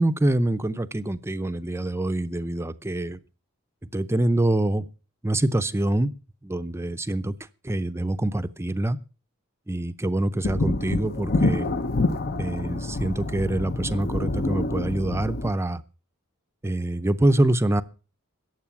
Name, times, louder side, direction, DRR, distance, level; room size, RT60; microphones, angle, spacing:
voice 1, 0.0-3.2 3.9-4.9 5.2-6.1 6.4-7.3 7.6-9.0 9.7-11.7 12.4-15.8 16.6-17.8, right 1 dB, 10° right, 12 dB, 0.6 m, -25 dB
sound 1, 10.4-15.5, left 2 dB, 50° left, 0.7 m, -27 dB
14.5 x 9.4 x 6.0 m, 0.35 s
head